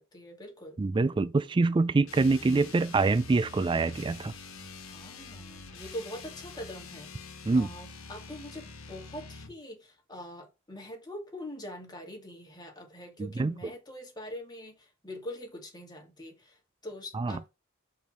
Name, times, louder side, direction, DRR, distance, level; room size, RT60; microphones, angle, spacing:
voice 1, 0.0-0.8 4.9-7.1 7.5-17.5, left 1 dB, 20° left, 2.4 m, -43 dB
voice 2, 0.8-4.3 7.5-7.7 13.2-13.6 17.1-17.4, right 3 dB, 25° right, 0.3 m, -25 dB
sound 1, 2.0-9.6, left 4 dB, 75° left, 1.4 m, -46 dB
5.4 x 4.5 x 6.2 m
head